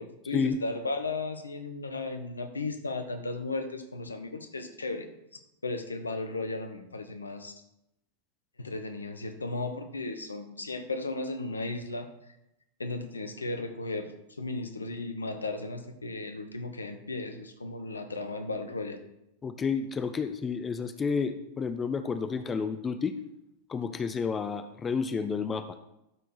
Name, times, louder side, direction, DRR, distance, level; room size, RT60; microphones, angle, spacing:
voice 1, 0.0-5.1 5.6-7.5 8.6-12.1 12.8-14.1 14.4-19.0, left 3 dB, 80° left, 7 dB, 1.0 m, -35 dB
voice 2, 19.4-23.2 23.7-25.7, left 5 dB, 20° left, 10 dB, 0.6 m, -30 dB
12.5 x 4.6 x 4.7 m, 0.86 s
figure-of-eight pair, 90°, 0 cm